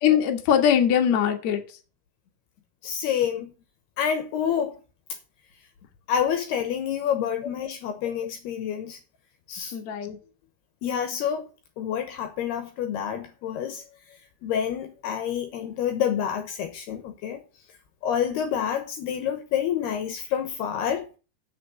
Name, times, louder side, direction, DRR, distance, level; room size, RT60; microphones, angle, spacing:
voice 1, 0.0-1.6 9.7-10.2, left 8 dB, 55° left, 2.1 m, -21 dB
voice 2, 2.8-3.5 4.0-4.8 6.1-9.0 9.5-9.7 10.8-11.5 11.8-13.8 14.4-17.4 18.0-21.0, left 8 dB, 70° left, 2.8 m, -28 dB
8.1 x 6.8 x 8.2 m
omnidirectional pair, 5.4 m